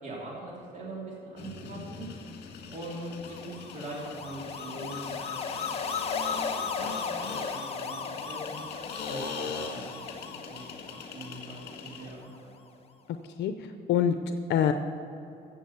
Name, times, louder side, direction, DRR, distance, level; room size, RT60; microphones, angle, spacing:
voice 1, 0.0-2.1 2.7-5.4 6.3-6.4 6.8-8.6 9.1-10.0 10.3-12.6, right 1 dB, 45° right, -4 dB, 3.2 m, -42 dB
sound 1, 1.4-12.2, left 5 dB, 70° left, 1.8 m, -41 dB
sound 2, 3.1-12.3, left 5 dB, 35° left, 1.1 m, -37 dB
voice 2, 13.4-14.7, left 8 dB, 85° left, 8 dB, 0.6 m, -26 dB
15.5 x 7.3 x 7.0 m, 2.7 s
cardioid pair, 135°, 18 cm